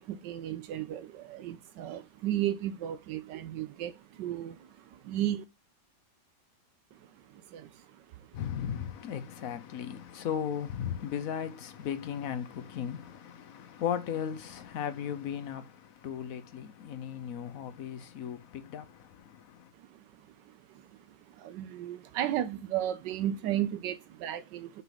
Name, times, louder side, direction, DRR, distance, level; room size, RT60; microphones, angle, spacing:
voice 1, 0.0-5.4 6.9-8.4 19.8-20.0 20.4-24.8, right 12 dB, 85° right, 1.2 m, -35 dB
voice 2, 8.3-19.7, left 8 dB, 65° left, 1.0 m, -36 dB
6.0 x 3.7 x 5.6 m
omnidirectional pair, 1.8 m